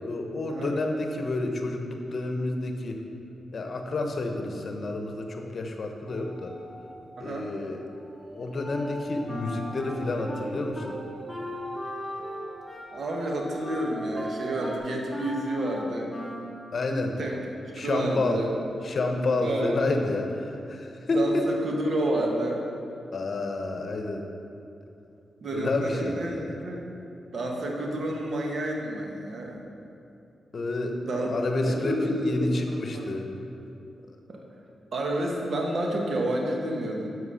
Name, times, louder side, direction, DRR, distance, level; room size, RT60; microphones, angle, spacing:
voice 1, 0.0-3.0 3.5-6.5 7.2-7.8 8.3-11.0 16.7-17.2 17.7-18.4 18.8-21.5 23.1-24.3 25.5-26.5 30.5-33.3, left 2 dB, 55° left, 4 dB, 0.9 m, -29 dB
sound 1, 6.0-14.8, right 2 dB, 20° right, 2.0 m, -41 dB
voice 2, 7.2-7.5 12.9-16.1 17.2-18.5 19.4-19.7 21.1-22.6 25.4-26.4 26.6-26.9 27.3-29.6 31.0-31.3 31.6-33.1 34.3-34.4 34.9-37.1, right 1 dB, 65° right, 0 dB, 1.4 m, -30 dB
Wind instrument woodwind instrument, 9.3-10.9 11.3-16.6, left 1 dB, 10° left, 1.4 m, -38 dB
7.8 x 6.0 x 5.7 m, 2.7 s
cardioid pair, 70°, 0 cm